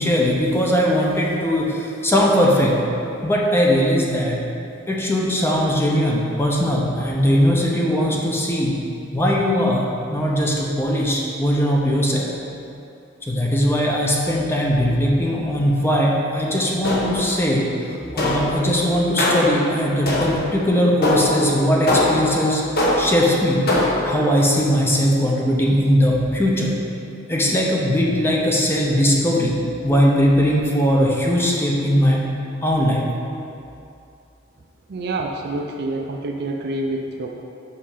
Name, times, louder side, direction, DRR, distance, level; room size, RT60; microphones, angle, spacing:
voice 1, 0.0-2.8 3.2-4.4 4.9-8.8 9.1-12.3 13.3-22.6 23.0-23.6 24.0-26.8 27.3-29.6 29.8-32.2 32.6-33.1, equal, 10° left, -3 dB, 0.7 m, -19 dB
sound 1, 16.8-17.4 18.2-18.6 19.2-19.6 20.1-20.5 21.0-21.4 21.9-22.3 22.8-23.2 23.7-24.1, left 1 dB, 50° left, 1.1 m, -21 dB
voice 2, 34.9-37.4, right 2 dB, 55° right, 1 dB, 0.4 m, -27 dB
5.6 x 5.4 x 5.0 m, 2.7 s
head